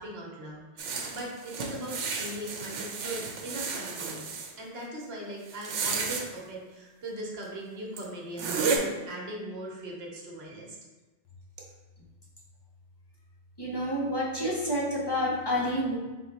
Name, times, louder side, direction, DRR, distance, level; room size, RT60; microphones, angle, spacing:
voice 1, 0.0-10.8, right 1 dB, 60° right, -2 dB, 1.2 m, -40 dB
sound 1, 0.8-4.5 5.5-6.3 7.4-7.5 8.0-8.1 8.4-8.8, right 5 dB, 85° right, 1.0 m, -32 dB
voice 2, 13.6-16.0, equal, 25° left, -4 dB, 0.7 m, -29 dB
3.6 x 3.5 x 4.1 m, 1.2 s
omnidirectional pair, 1.2 m